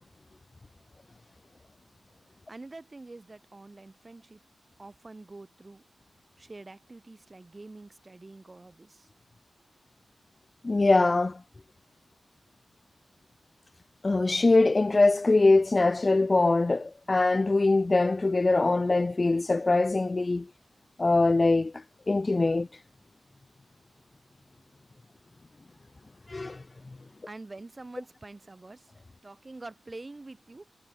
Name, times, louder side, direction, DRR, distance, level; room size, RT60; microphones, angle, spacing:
voice 1, 2.5-4.4 4.8-5.8 6.4-9.1 27.3-28.9 29.2-30.7, right 2 dB, 25° right, 5.6 m, -46 dB
voice 2, 10.6-11.4 14.0-20.5 21.0-21.7 22.1-22.7 26.3-26.6, left 3 dB, 30° left, 0.7 m, -23 dB
wide cardioid pair, 115°, 0 cm